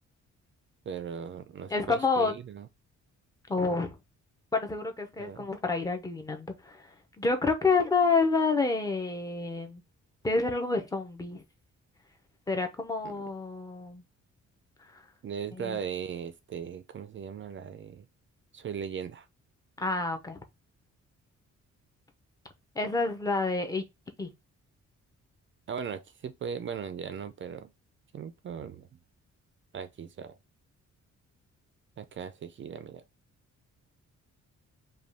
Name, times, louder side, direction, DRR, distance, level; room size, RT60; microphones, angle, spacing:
voice 1, 0.9-2.7 5.2-5.5 13.0-13.1 15.2-18.1 18.5-19.3 25.7-27.7 28.1-28.9 29.7-30.4 32.0-33.0, right 7 dB, 40° right, 0.5 m, -38 dB
voice 2, 1.7-2.3 3.5-3.9 4.5-6.8 7.2-9.8 10.2-11.4 12.5-14.0 14.9-15.0 15.5-15.8 19.8-20.4 22.8-23.8 24.2-24.3, left 4 dB, 10° left, 0.7 m, -28 dB
5.1 x 2.4 x 3.3 m
wide cardioid pair, 165°, 29 cm